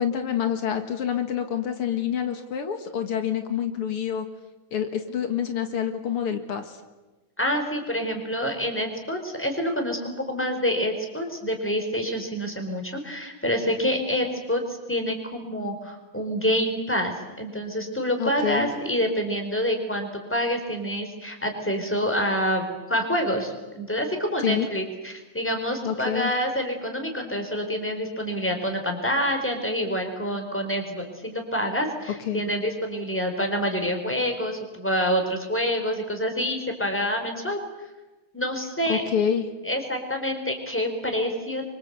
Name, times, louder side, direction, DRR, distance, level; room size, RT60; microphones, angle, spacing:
voice 1, 0.0-4.3 4.7-6.8 18.2-18.7 24.4-24.7 25.8-26.3 32.3-32.4 38.9-39.5, left 8 dB, 80° left, 7 dB, 2.7 m, -27 dB
voice 2, 7.4-37.6 38.3-39.0 39.6-41.6, equal, 5° left, 4 dB, 4.2 m, -27 dB
27.5 x 24.5 x 8.2 m, 1.1 s
omnidirectional pair, 2.4 m